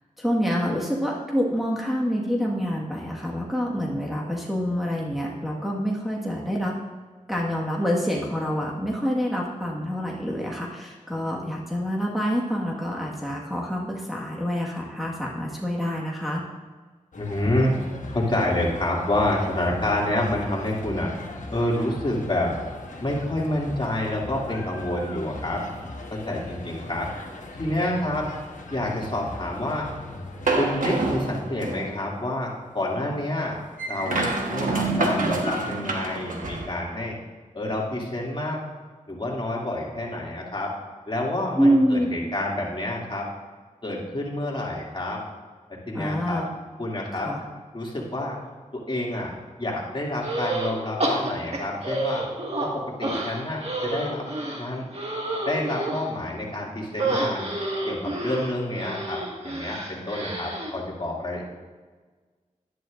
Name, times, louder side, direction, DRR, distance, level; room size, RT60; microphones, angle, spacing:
voice 1, 0.2-6.7 7.3-16.4 41.6-42.1 45.9-46.5 47.2-47.4, equal, ahead, -3 dB, 1.6 m, -26 dB
sound 1, 17.1-31.2, left 2 dB, 75° left, 1.3 m, -39 dB
voice 2, 17.2-17.8 18.1-21.1 21.5-22.5 23.0-25.6 26.1-27.1 27.6-28.3 28.7-29.9 30.6-33.6 33.9-37.1 37.5-38.6 39.1-40.7 41.1-43.3 43.8-45.2 45.9-46.4 46.8-47.3 47.7-48.4 48.7-49.3 49.6-52.3 52.6-54.2 54.6-54.8 55.5-57.5 57.9-61.5, left 1 dB, 40° left, -3 dB, 2.5 m, -28 dB
sound 2, 30.5-32.0 33.8-36.7, right 2 dB, 85° right, 1.3 m, -26 dB
sound 3, 50.2-50.7 51.0-52.7 53.0-56.1 57.0-60.7, right 2 dB, 50° right, 1.9 m, -29 dB
11.5 x 10.5 x 2.6 m, 1.4 s
cardioid pair, 55°, 13 cm